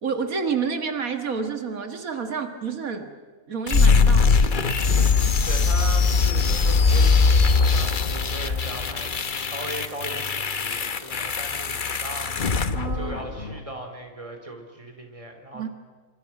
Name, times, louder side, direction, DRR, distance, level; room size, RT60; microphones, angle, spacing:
voice 1, 0.0-3.1 3.5-4.4 12.7-13.2 15.5-15.7, right 5 dB, 85° right, 7 dB, 2.2 m, -29 dB
sound 1, 3.7-13.6, left 4 dB, 40° left, 1.1 m, -21 dB
voice 2, 5.2-9.1 9.4-15.7, right 1 dB, 25° right, 4 dB, 3.9 m, -38 dB
27.0 x 26.5 x 6.0 m, 1.5 s
omnidirectional pair, 1.4 m